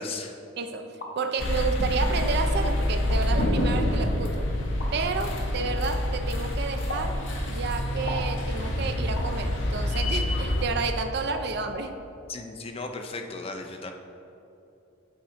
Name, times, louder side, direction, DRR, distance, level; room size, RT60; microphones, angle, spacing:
voice 1, 0.0-0.4 12.3-13.9, left 3 dB, 30° left, 4 dB, 0.5 m, -36 dB
voice 2, 0.6-4.5 4.9-7.2 7.5-11.9, right 4 dB, 55° right, 7 dB, 0.5 m, -31 dB
sound 1, 0.7-1.2 2.0-2.1 3.0-3.2 4.8-4.9 6.9-7.1 8.1-8.3 9.2-9.4 10.6-10.7 11.3-11.4 11.7-11.9, left 2 dB, 90° left, 1.1 m, -37 dB
sound 2, 1.4-10.6, left 1 dB, 65° left, 0.9 m, -27 dB
8.6 x 3.9 x 4.9 m, 2.8 s
head